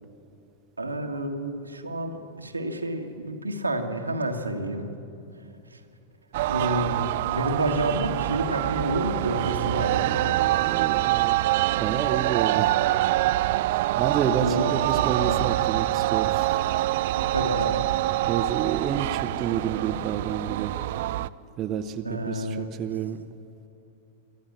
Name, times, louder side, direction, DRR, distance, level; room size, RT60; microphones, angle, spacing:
voice 1, 0.8-4.9 6.5-10.4 14.4-15.4 17.2-17.8 22.0-22.7, right 1 dB, 90° right, 3 dB, 1.6 m, -29 dB
sound 1, 6.3-21.3, right 16 dB, 55° right, 0.4 m, -25 dB
voice 2, 10.6-11.4 11.8-12.9 13.2-16.8 18.3-20.8 21.6-23.2, right 8 dB, 35° right, 7 dB, 0.9 m, -30 dB
23.0 x 13.5 x 8.6 m, 2.7 s
figure-of-eight pair, 95°, 0 cm